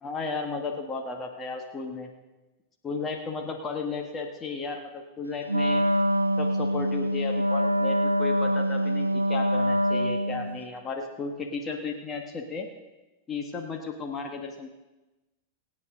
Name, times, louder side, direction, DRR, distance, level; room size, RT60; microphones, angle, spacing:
voice 1, 0.0-2.1 2.8-5.8 6.4-12.7 13.3-14.7, left 4 dB, 20° left, 2 dB, 1.5 m, -34 dB
Wind instrument woodwind instrument, 5.5-10.6, equal, 85° right, 0.4 m, -25 dB
23.5 x 8.8 x 3.8 m, 1.1 s
figure-of-eight pair, 90°, 0 cm